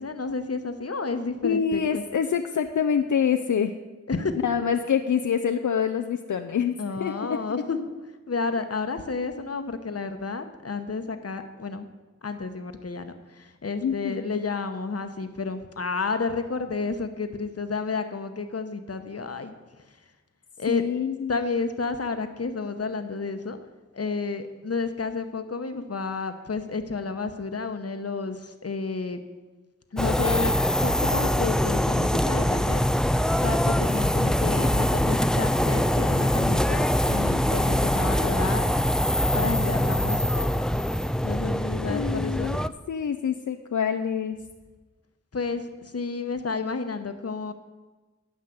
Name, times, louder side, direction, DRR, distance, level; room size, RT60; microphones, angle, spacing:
voice 1, 0.0-2.0 4.1-4.4 6.8-7.8 8.3-11.9 12.2-19.5 19.9-20.0 20.6-20.8 21.3-23.6 23.9-29.2 29.9-32.8 33.4-38.7 39.3-40.5 41.2-42.6 45.3-47.5, left 4 dB, 55° left, 8 dB, 1.0 m, -31 dB
voice 2, 1.4-3.7 4.4-7.4 13.8-14.4 20.7-21.4 41.9-42.6 42.9-44.4, left 7 dB, 80° left, 6 dB, 0.5 m, -26 dB
sound 1, 30.0-42.7, equal, ahead, 0.4 m, -23 dB
11.5 x 5.6 x 7.8 m, 1.2 s
cardioid pair, 40°, 30 cm